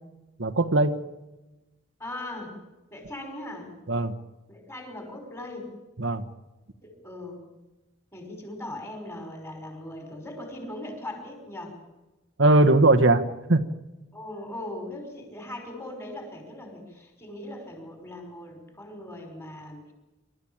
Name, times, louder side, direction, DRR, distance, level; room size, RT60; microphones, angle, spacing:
voice 1, 0.4-0.9 3.9-4.1 6.0-6.2 12.4-13.2 13.5-13.6, right 2 dB, 65° right, 5 dB, 1.3 m, -19 dB
voice 2, 2.0-2.6 2.9-3.8 4.5-5.7 6.8-7.4 8.1-11.8 14.1-19.9, left 1 dB, 15° left, 3 dB, 5.3 m, -39 dB
27.0 x 13.5 x 8.9 m, 1.0 s
head